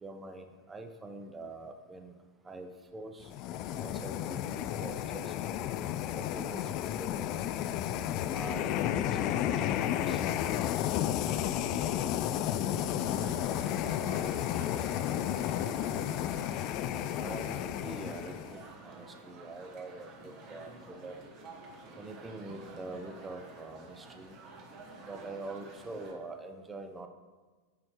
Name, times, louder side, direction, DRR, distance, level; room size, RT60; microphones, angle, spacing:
voice 1, 0.0-2.1 2.4-3.3 3.8-5.3 6.1-7.3 8.3-9.6 9.9-10.2 17.2-20.7 21.0-21.2 22.0-24.4 25.0-27.1, right 2 dB, 15° right, 6 dB, 0.6 m, -44 dB
sound 1, 3.2-18.6, left 11 dB, 40° left, 0.3 m, -32 dB
voice 2, 10.9-13.4 13.8-16.0, left 2 dB, 75° left, 5 dB, 0.7 m, -48 dB
sound 2, 13.0-26.1, right 2 dB, 35° right, 1.1 m, -50 dB
9.5 x 4.2 x 3.2 m, 1.4 s
figure-of-eight pair, 90°, 0 cm